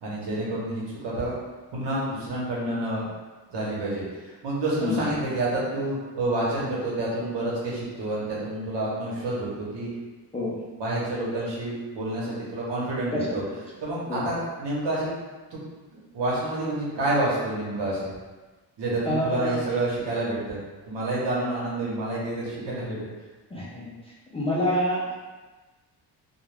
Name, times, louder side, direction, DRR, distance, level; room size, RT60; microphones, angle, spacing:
voice 1, 0.0-1.4 1.7-3.1 3.5-9.9 10.8-13.4 13.8-15.1 15.5-15.6 15.9-18.1 18.8-20.6 20.9-23.0, right 1 dB, 70° right, -6 dB, 1.0 m, -28 dB
voice 2, 13.1-13.6 14.1-14.2 19.0-19.6 23.5-23.9 24.3-25.1, left 1 dB, 15° left, -7 dB, 0.3 m, -27 dB
2.3 x 2.3 x 3.2 m, 1.2 s
cardioid pair, 135°, 43 cm